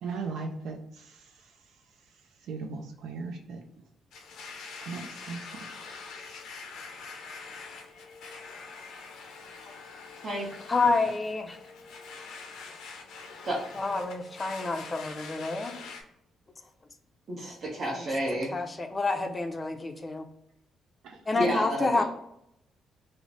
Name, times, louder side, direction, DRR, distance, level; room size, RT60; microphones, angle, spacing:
voice 1, 0.0-3.6 4.8-6.4 21.0-21.3, right 4 dB, 80° right, 3 dB, 0.4 m, -39 dB
Domestic sounds home sounds, 4.1-16.0, left 4 dB, 80° left, 0.5 m, -44 dB
voice 2, 10.7-11.6 13.7-15.7 18.0-18.1 18.5-20.3 21.3-22.0, left 3 dB, 25° left, 6 dB, 0.4 m, -28 dB
voice 3, 17.3-18.6 21.3-22.0, right 1 dB, 50° right, -4 dB, 0.8 m, -30 dB
3.1 x 2.0 x 3.8 m, 0.78 s
cardioid pair, 90°, 0 cm